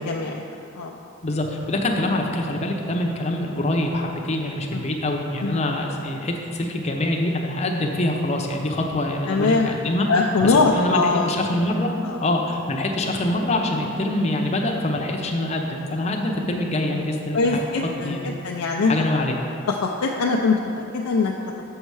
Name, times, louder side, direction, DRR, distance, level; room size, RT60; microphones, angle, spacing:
voice 1, 0.1-0.4 0.8-1.0 4.7-4.9 5.4-5.6 9.3-9.7 10.1-11.2 12.0-12.2 17.3-18.2 18.4-18.9 19.7-21.3, left 4 dB, 90° left, 0 dB, 0.4 m, -21 dB
voice 2, 1.2-10.1 10.4-11.9 12.2-17.7 18.0-18.4 18.8-19.4, left 1 dB, 30° left, 1 dB, 0.6 m, -25 dB
7.2 x 5.5 x 4.7 m, 2.7 s
head